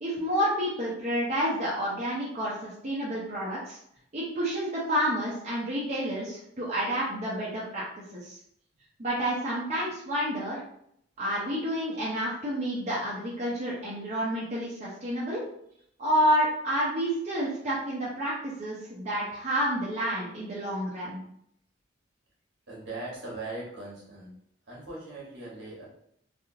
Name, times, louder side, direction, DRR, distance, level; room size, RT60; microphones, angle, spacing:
voice 1, 0.0-3.8 4.1-7.8 8.1-8.4 9.0-10.6 11.2-15.4 16.0-21.2, equal, 35° right, -7 dB, 0.7 m, -29 dB
voice 2, 22.7-24.4 24.7-25.9, right 2 dB, 65° right, -5 dB, 1.3 m, -40 dB
3.4 x 2.4 x 2.7 m, 0.72 s
head